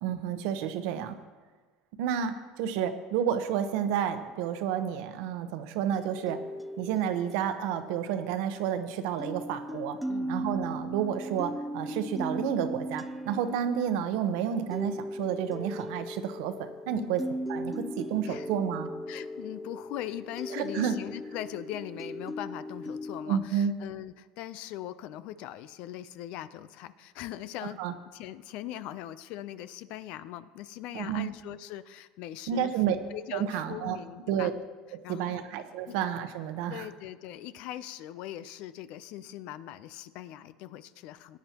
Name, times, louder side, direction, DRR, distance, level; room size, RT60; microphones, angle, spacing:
voice 1, 0.0-1.2 2.0-6.4 6.8-10.0 10.3-17.2 17.5-18.9 20.5-21.0 23.3-23.7 27.8-27.9 30.9-31.3 32.5-33.0 33.3-34.0 34.3-34.5 34.9-36.9, right 9 dB, 75° right, 9 dB, 1.0 m, -30 dB
sound 1, 5.9-8.8 9.2-23.3, equal, ahead, 0.6 m, -38 dB
voice 2, 16.9-17.2 18.3-18.5 19.1-27.8 28.1-32.7 33.1-34.5 35.0-35.5 35.9-36.0 36.7-41.4, left 12 dB, 65° left, 14 dB, 0.6 m, -41 dB
17.5 x 9.7 x 3.0 m, 1.3 s
supercardioid pair, 110°, 2 cm